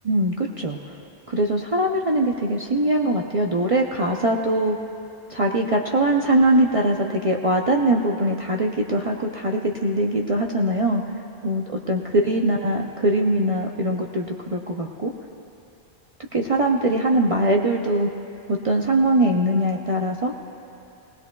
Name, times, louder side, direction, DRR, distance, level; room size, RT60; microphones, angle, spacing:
voice 1, 0.0-0.8 1.3-4.8 5.3-11.0 11.4-15.1 16.3-18.1 18.5-20.3, right 1 dB, 40° right, 0 dB, 0.6 m, -22 dB
19.0 x 19.0 x 2.3 m, 2.8 s
omnidirectional pair, 1.1 m